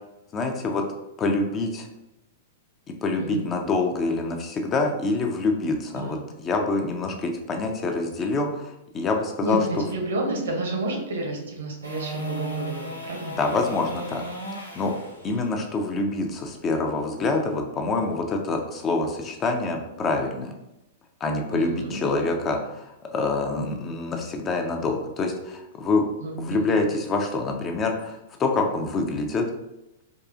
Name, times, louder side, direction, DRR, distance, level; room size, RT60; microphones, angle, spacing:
voice 1, 0.3-0.8 1.2-1.9 3.0-9.9 13.4-14.2 14.8-14.9 15.2-20.5 21.2-26.0 26.4-29.4, left 3 dB, 25° left, 3 dB, 0.4 m, -26 dB
voice 2, 3.2-3.5 6.0-6.2 9.4-13.3 21.5-22.0 26.2-26.7, right 2 dB, 60° right, 1 dB, 0.8 m, -30 dB
sound 1, 11.8-17.9 24.5-24.6, right 1 dB, 85° left, 0.7 m, -36 dB
3.7 x 2.3 x 2.5 m, 0.90 s
figure-of-eight pair, 100°, 0 cm